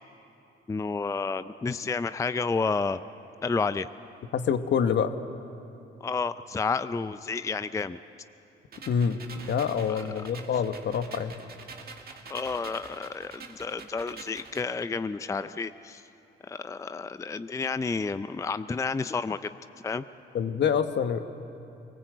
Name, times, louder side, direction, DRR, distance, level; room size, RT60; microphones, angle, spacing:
voice 1, 0.7-3.0 3.4-3.9 6.0-8.0 9.8-10.0 12.3-16.0 16.4-19.6 19.8-20.0, left 4 dB, 15° left, 12 dB, 0.4 m, -30 dB
voice 2, 4.3-5.2 8.9-11.3 20.3-21.2, left 7 dB, 60° left, 9 dB, 1.2 m, -26 dB
sound 1, 8.7-14.7, right 5 dB, 50° right, 2.0 m, -46 dB
23.5 x 20.0 x 8.0 m, 2.8 s
cardioid pair, 90°, 20 cm